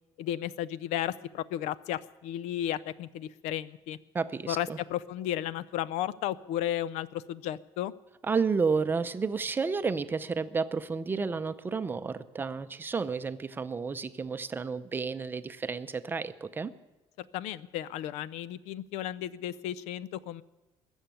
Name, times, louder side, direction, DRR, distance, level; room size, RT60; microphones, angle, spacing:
voice 1, 0.2-4.0 4.5-7.9 17.2-20.4, left 12 dB, 90° left, 18 dB, 0.6 m, -34 dB
voice 2, 4.1-4.8 8.2-16.7, right 5 dB, 20° right, 11 dB, 0.6 m, -31 dB
21.0 x 7.2 x 9.0 m, 1.1 s
cardioid pair, 160°, 11 cm